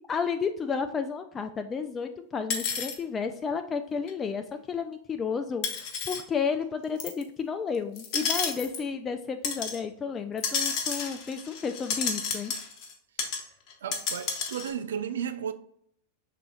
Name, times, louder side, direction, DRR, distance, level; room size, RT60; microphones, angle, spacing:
voice 1, 0.1-12.5, left 5 dB, 25° left, 0.3 m, -32 dB
sound 1, 2.5-3.0 4.1-4.2 5.6-6.2 7.0-7.2 8.0-8.8 9.4-9.8 10.4-12.9 13.2-13.4 13.7-14.7, left 6 dB, 45° left, 1.0 m, -31 dB
voice 2, 13.8-15.5, right 8 dB, 75° right, 0.4 m, -33 dB
5.5 x 3.9 x 2.4 m
hypercardioid pair, 95°, 0 cm